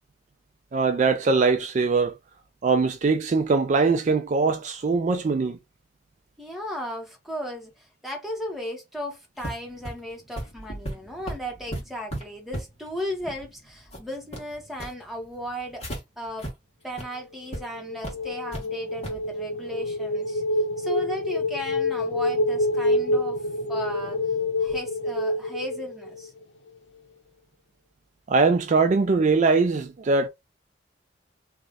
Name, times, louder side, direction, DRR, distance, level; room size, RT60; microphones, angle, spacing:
voice 1, 0.7-2.2 2.6-5.6 28.3-30.3, right 4 dB, 40° right, 0.3 m, -21 dB
voice 2, 6.4-15.9 16.2-16.5 16.8-20.4 20.8-23.4 23.7-24.2 24.6-26.3, equal, ahead, 1.2 m, -35 dB
sound 1, 9.4-16.0 16.4-16.5 16.9-17.0 17.5-17.6 18.0-18.7 19.0-19.2, right 1 dB, 35° left, 1.5 m, -36 dB
sound 2, 17.5-26.4, left 1 dB, 85° left, 0.7 m, -27 dB
3.1 x 2.4 x 4.0 m
head